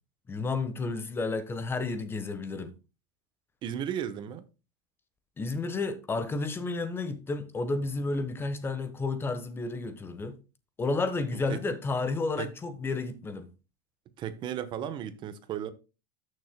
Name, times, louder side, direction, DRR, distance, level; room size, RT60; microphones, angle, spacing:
voice 1, 0.3-2.7 5.4-10.4 10.8-13.5, left 3 dB, 20° left, 1.1 m, -31 dB
voice 2, 3.6-4.4 11.3-11.6 12.4-12.5 14.2-15.7, right 9 dB, 40° right, 1.0 m, -35 dB
12.5 x 6.6 x 2.2 m
supercardioid pair, 130°, 12 cm